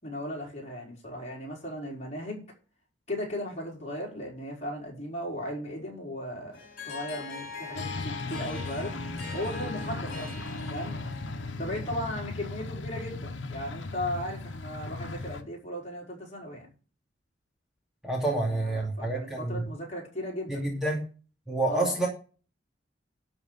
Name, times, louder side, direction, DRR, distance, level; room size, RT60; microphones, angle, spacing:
voice 1, 0.0-2.4 3.1-6.6 6.8-8.9 9.3-11.0 11.6-16.7 18.2-20.7 21.7-21.9, left 1 dB, 35° left, -1 dB, 4.8 m, -36 dB
Harp, 6.5-12.3, left 3 dB, 50° left, 4.3 m, -41 dB
sound 1, 7.7-15.4, left 3 dB, 75° left, 1.3 m, -37 dB
voice 2, 18.0-19.6 20.5-21.0 21.5-22.1, right 2 dB, 5° right, -2 dB, 2.5 m, -28 dB
11.5 x 4.9 x 8.1 m, 0.37 s
head